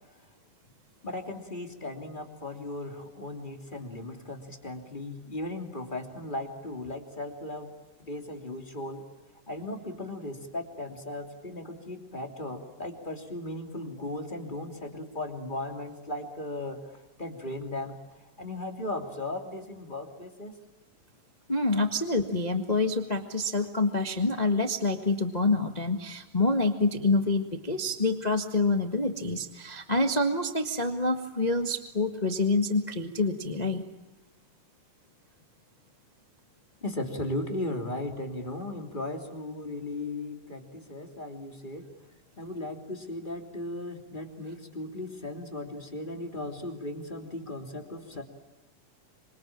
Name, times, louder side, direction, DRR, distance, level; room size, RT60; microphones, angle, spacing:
voice 1, 1.0-7.7 8.1-9.0 9.5-16.8 17.2-18.0 18.4-20.6 36.8-41.9 42.4-48.2, left 1 dB, 15° left, 4 dB, 2.9 m, -37 dB
voice 2, 21.5-33.8, left 2 dB, 70° left, 7 dB, 0.4 m, -27 dB
27.0 x 25.0 x 8.8 m, 1.1 s
omnidirectional pair, 3.8 m